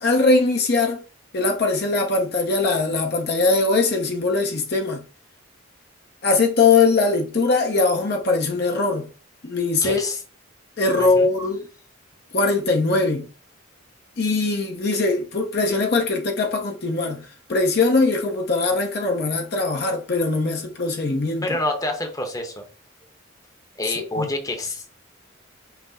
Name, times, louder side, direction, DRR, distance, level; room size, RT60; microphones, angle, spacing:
voice 1, 0.0-1.0 1.3-5.0 6.2-9.1 9.4-10.0 10.8-11.6 12.3-13.3 14.2-21.6 23.8-24.3, left 3 dB, 55° left, 0.7 m, -21 dB
voice 2, 9.8-10.2 11.0-11.3 21.4-22.6 23.8-24.9, left 2 dB, 20° left, 0.8 m, -27 dB
5.7 x 2.0 x 4.1 m
head